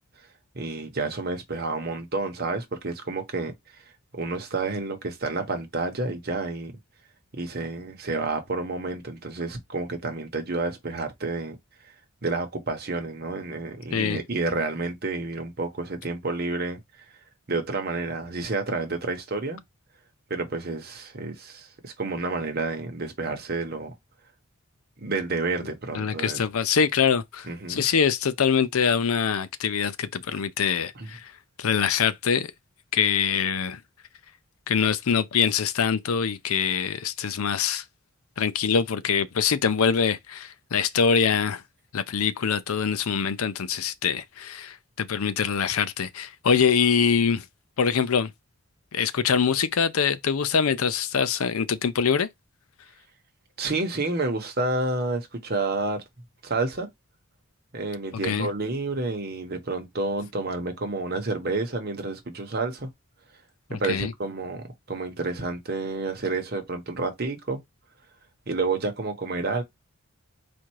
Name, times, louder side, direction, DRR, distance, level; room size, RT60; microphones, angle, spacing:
voice 1, 0.5-3.8 4.1-6.7 7.3-11.6 12.2-16.8 17.5-19.6 20.3-23.9 25.0-26.4 27.5-27.8 31.0-31.1 53.6-56.0 56.4-56.9 57.7-62.9 63.7-67.6 68.5-69.6, right 3 dB, 45° right, 1.0 m, -29 dB
voice 2, 13.9-14.2 25.9-31.3 31.6-32.5 32.9-33.8 34.7-37.8 38.4-41.6 41.9-47.4 47.8-48.3 48.9-52.3 58.2-58.5 63.7-64.1, left 6 dB, 75° left, 0.5 m, -24 dB
4.3 x 2.5 x 4.6 m
head